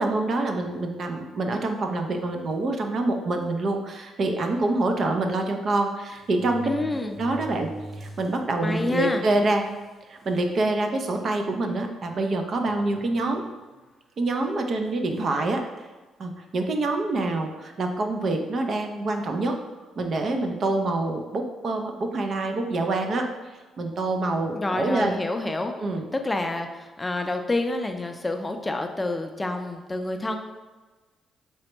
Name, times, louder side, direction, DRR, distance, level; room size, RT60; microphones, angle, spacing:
voice 1, 0.0-6.7 7.0-9.7 10.0-13.5 14.2-15.7 16.2-19.6 20.0-23.3 23.8-25.2 25.8-26.0, right 2 dB, 50° right, 4 dB, 0.5 m, -26 dB
sound 1, 2.5-2.8 3.5-3.6 3.9-4.0 5.3-5.4 6.1-8.4 8.8-8.9 9.7-9.8 10.2-10.6 11.2-11.4 12.6-13.5 14.4-14.7, right 1 dB, 35° right, 0.9 m, -41 dB
voice 2, 6.7-7.2 8.6-9.2 24.6-25.7 26.1-30.4, left 2 dB, 15° left, 5 dB, 0.4 m, -28 dB
4.2 x 3.3 x 2.9 m, 1.3 s
cardioid pair, 90°, 0 cm